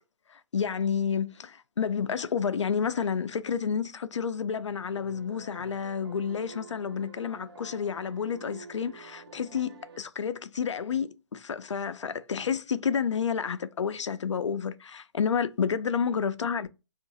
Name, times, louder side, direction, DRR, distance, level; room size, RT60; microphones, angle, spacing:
voice 1, 0.3-16.7, left 6 dB, 75° left, 0.4 m, -30 dB
sound 1, 4.9-10.0, right 4 dB, 55° right, 0.5 m, -49 dB
2.6 x 2.5 x 3.9 m
figure-of-eight pair, 140°, 15 cm